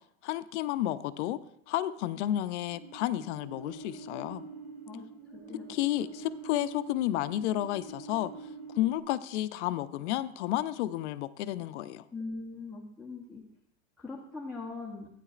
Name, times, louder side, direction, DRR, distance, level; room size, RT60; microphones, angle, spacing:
voice 1, 0.2-1.4 1.7-4.4 5.7-8.3 8.7-12.0, left 13 dB, 75° left, 13 dB, 0.6 m, -31 dB
sound 1, 2.7-9.0, right 4 dB, 15° right, 2.5 m, -46 dB
voice 2, 5.3-5.7 12.1-13.4 14.0-15.1, left 3 dB, ahead, -5 dB, 0.8 m, -41 dB
12.0 x 9.3 x 2.4 m, 0.71 s
supercardioid pair, 160°, 35 cm